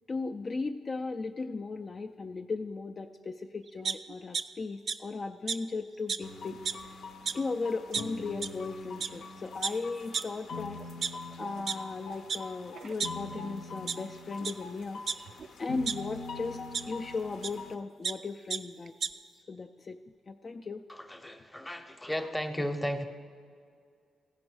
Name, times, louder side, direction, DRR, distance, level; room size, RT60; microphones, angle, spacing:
voice 1, 0.1-6.6 6.8-7.0 7.3-10.8 11.4-15.0 15.6-16.6 16.9-18.9 19.5-20.0 20.3-20.8, left 3 dB, 35° left, 3 dB, 0.3 m, -36 dB
sound 1, 3.8-4.4 4.9-5.0 5.5-5.6 6.1-6.2 6.5-6.8 7.3-7.4 7.9-8.0 8.4-8.5 9.0-9.1 9.6-9.7 10.1-10.2 10.8-11.7 12.3-12.4 12.7-13.5 13.9-14.0 14.4-14.5 15.1-15.9 16.7-16.8 17.4-17.5 17.8-18.1 18.5-18.6 18.9-19.1, right 6 dB, 55° right, 0.4 m, -32 dB
sound 2, 6.2-17.7, left 3 dB, 75° left, 0.6 m, -43 dB
voice 2, 20.9-23.0, equal, 5° left, 6 dB, 0.7 m, -34 dB
15.5 x 5.3 x 4.7 m, 2.2 s
cardioid pair, 90°, 0 cm